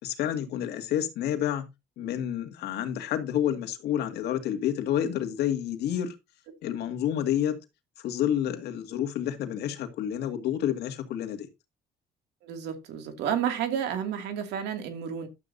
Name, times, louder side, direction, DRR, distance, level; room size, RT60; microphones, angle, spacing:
voice 1, 0.0-1.6 2.0-6.2 6.6-7.6 8.0-11.5, left 10 dB, 75° left, 2.0 m, -29 dB
voice 2, 12.4-15.3, right 8 dB, 85° right, 2.4 m, -31 dB
12.0 x 8.2 x 2.7 m
cardioid pair, 110°, 17 cm